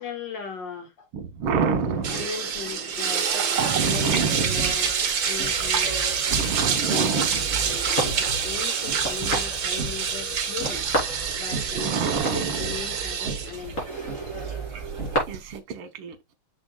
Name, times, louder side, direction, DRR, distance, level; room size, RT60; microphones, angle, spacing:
voice 1, 0.0-1.1 2.1-5.0 5.3-6.0 6.5-10.9 11.4-13.9, left 6 dB, 60° left, 2.5 m, -38 dB
voice 2, 1.1-2.2 3.6-4.7 6.4-7.8 11.7-12.7 15.3-16.2, right 5 dB, 85° right, 2.0 m, -27 dB
sound 1, 1.6-15.2, right 1 dB, 40° left, 4.3 m, -36 dB
sound 2, 2.0-15.6, right 7 dB, 65° right, 1.9 m, -27 dB
sound 3, 4.5-15.1, right 4 dB, 30° right, 1.8 m, -37 dB
6.9 x 6.0 x 2.4 m
omnidirectional pair, 2.2 m